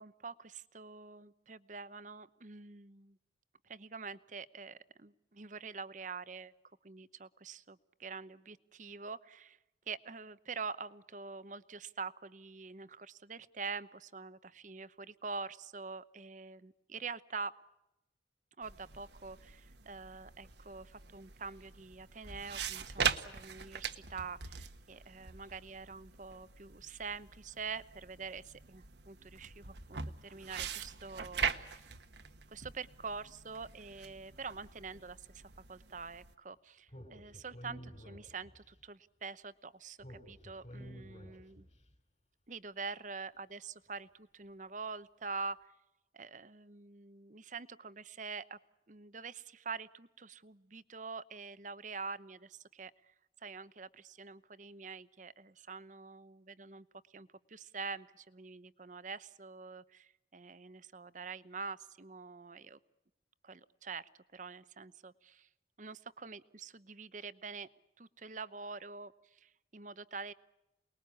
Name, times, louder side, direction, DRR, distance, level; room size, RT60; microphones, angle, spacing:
voice 1, 0.0-3.2 3.6-6.5 6.8-9.6 9.9-17.5 18.6-31.9 32.5-35.4 35.7-41.7 42.5-45.7 46.1-48.6 48.9-62.8 63.4-65.5 65.8-67.7 68.0-70.3, right 4 dB, 40° right, 14 dB, 0.9 m, -45 dB
sound 1, 18.6-36.3, right 6 dB, 65° right, 1.4 m, -42 dB
Speech, 36.9-38.7 40.0-41.8, equal, 35° left, 4.7 m, -50 dB
28.5 x 20.5 x 8.4 m, 0.92 s
head